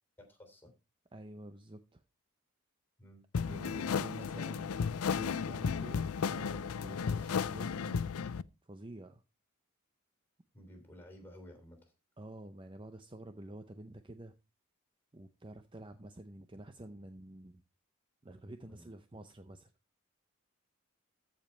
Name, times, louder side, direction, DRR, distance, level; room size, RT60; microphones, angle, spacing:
voice 1, 0.2-0.7 3.0-3.2 4.4-4.5 10.5-11.9 18.6-18.9, equal, 10° left, 3.2 m, -54 dB
voice 2, 1.1-2.0 3.5-4.7 5.1-8.2 8.6-9.2 12.2-14.3 15.1-17.6 18.2-19.7, right 1 dB, 25° right, 0.6 m, -49 dB
sound 1, 3.3-8.4, left 6 dB, 85° left, 0.5 m, -34 dB
14.5 x 5.2 x 4.4 m
head